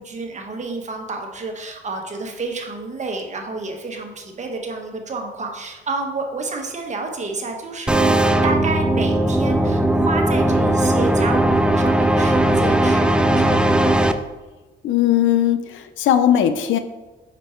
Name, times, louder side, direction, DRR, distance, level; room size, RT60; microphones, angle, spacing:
voice 1, 0.0-13.8, right 3 dB, 35° right, 2 dB, 1.1 m, -30 dB
sound 1, 7.9-14.1, right 1 dB, 5° right, 0.3 m, -18 dB
voice 2, 14.8-16.8, left 10 dB, 75° left, 10 dB, 0.5 m, -18 dB
5.1 x 4.5 x 4.4 m, 1.2 s
cardioid pair, 90°, 20 cm